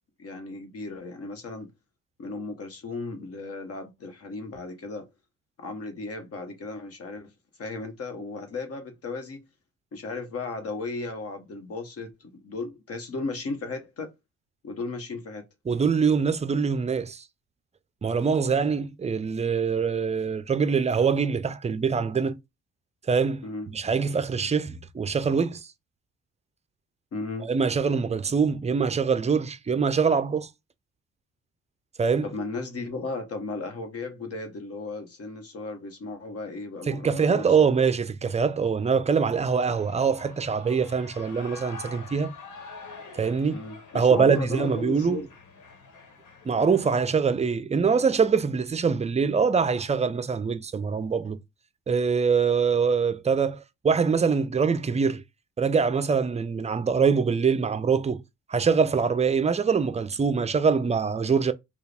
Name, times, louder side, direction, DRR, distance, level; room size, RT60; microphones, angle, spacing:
voice 1, 0.2-1.7 2.2-5.1 5.6-7.3 7.6-9.4 9.9-14.1 14.6-15.5 23.4-23.7 27.1-27.5 32.2-37.7 43.5-45.3, left 3 dB, 50° left, 1.3 m, -35 dB
voice 2, 15.7-17.2 18.0-22.4 23.1-25.7 27.4-30.5 32.0-32.3 36.9-42.3 43.1-43.6 43.9-45.2 46.4-51.4 51.9-55.2 55.6-58.2 58.5-61.5, right 5 dB, 20° right, 0.4 m, -24 dB
Shout / Cheering, 39.4-47.2, left 4 dB, 80° left, 1.4 m, -46 dB
4.6 x 2.4 x 3.4 m
cardioid pair, 90°, 30 cm